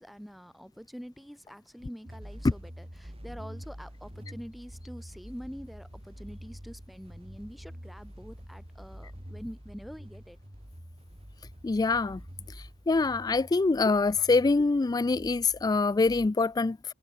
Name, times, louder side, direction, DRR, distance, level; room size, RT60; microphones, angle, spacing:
voice 1, 0.0-10.4, equal, ahead, 2.3 m, -45 dB
sound 1, 2.1-16.3, equal, 30° right, 5.0 m, -47 dB
voice 2, 11.6-12.2 12.9-16.9, left 3 dB, 20° left, 0.3 m, -25 dB
head